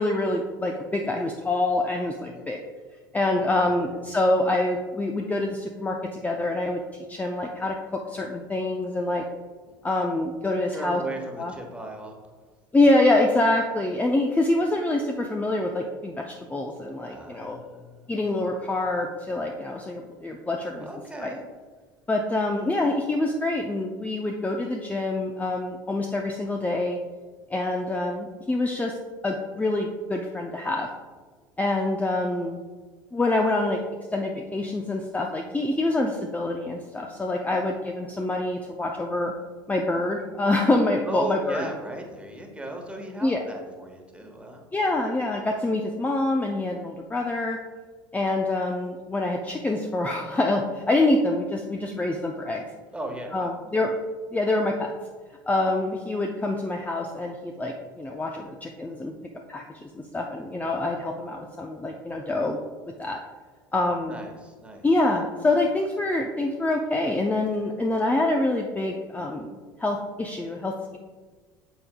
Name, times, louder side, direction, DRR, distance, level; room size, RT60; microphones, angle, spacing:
voice 1, 0.0-2.6 3.1-6.8 7.1-7.8 8.1-9.2 9.8-11.0 11.4-11.5 12.7-17.6 18.1-20.9 21.2-21.3 22.1-27.0 27.5-29.0 29.2-30.9 31.6-32.6 33.1-33.8 34.1-39.3 39.7-41.7 43.2-43.4 44.7-47.6 48.1-52.6 53.3-53.9 54.3-54.9 55.5-59.1 59.5-62.6 63.0-63.2 63.7-64.2 64.8-71.0, left 2 dB, 15° left, 2 dB, 0.6 m, -26 dB
voice 2, 3.3-4.0 9.7-9.8 10.7-12.1 17.1-18.1 20.7-21.4 41.1-44.6 52.9-53.8 64.0-64.9, right 1 dB, 10° right, 2 dB, 1.4 m, -37 dB
8.6 x 6.9 x 2.3 m, 1.4 s
hypercardioid pair, 70°, 12 cm